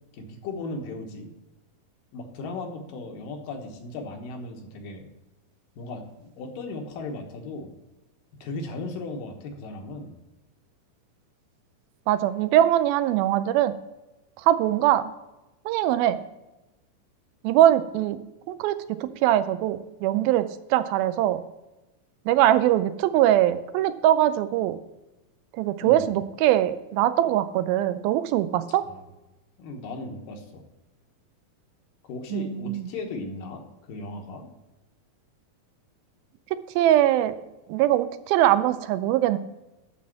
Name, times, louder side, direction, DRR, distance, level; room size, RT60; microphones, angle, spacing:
voice 1, 0.1-1.3 2.1-5.1 5.8-7.7 8.4-10.1 25.8-26.1 28.8-29.0 29.6-30.6 32.0-34.5, left 2 dB, 70° left, 3 dB, 2.7 m, -36 dB
voice 2, 12.1-13.7 14.4-15.1 15.7-16.2 17.4-18.2 18.5-20.4 20.7-21.4 22.3-24.8 25.6-28.9 32.3-32.9 36.8-37.3 37.7-39.4, right 12 dB, 85° right, 12 dB, 2.5 m, -22 dB
12.0 x 4.1 x 7.6 m, 1.0 s
omnidirectional pair, 4.2 m